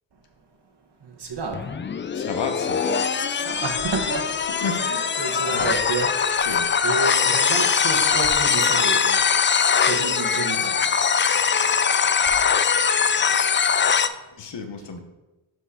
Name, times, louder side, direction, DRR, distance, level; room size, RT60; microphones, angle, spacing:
voice 1, 1.0-1.7 3.4-4.4 4.8-6.5 6.8-9.2 9.8-10.9 11.9-12.5, right 4 dB, 55° right, 2 dB, 1.4 m, -30 dB
sound 1, 1.5-14.1, left 6 dB, 25° left, 0.3 m, -21 dB
voice 2, 2.1-3.0 4.6-5.0 5.5-5.7 6.4-6.7 14.4-15.0, left 4 dB, 60° left, 6 dB, 1.1 m, -32 dB
5.8 x 4.6 x 4.8 m, 1.0 s
cardioid pair, 50°, 48 cm